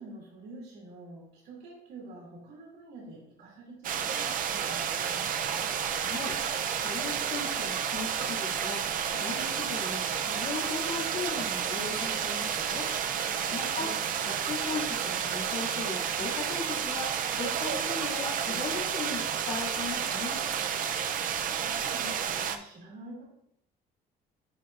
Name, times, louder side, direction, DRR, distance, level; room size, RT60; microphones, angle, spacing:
voice 1, 0.0-5.7 13.7-14.2 21.4-23.2, right 2 dB, 75° right, -3 dB, 2.6 m, -47 dB
sound 1, 3.8-22.6, right 8 dB, 55° right, 0.5 m, -31 dB
voice 2, 5.9-6.4 6.7-8.8 9.1-12.9 13.5-13.9 14.2-17.1 17.3-20.4, left 4 dB, 60° left, -6 dB, 2.4 m, -38 dB
11.0 x 4.1 x 2.5 m, 0.76 s
cardioid pair, 110°, 17 cm